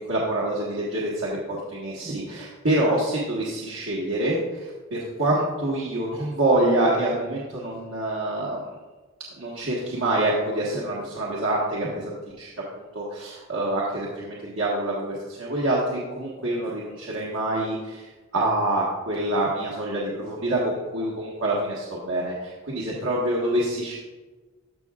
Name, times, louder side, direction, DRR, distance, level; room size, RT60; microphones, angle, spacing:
voice 1, 0.1-8.6 9.4-12.1 12.4-12.5 12.9-18.1 18.3-23.9, right 1 dB, 90° right, -5 dB, 1.4 m, -26 dB
14.0 x 5.8 x 2.4 m, 1.2 s
head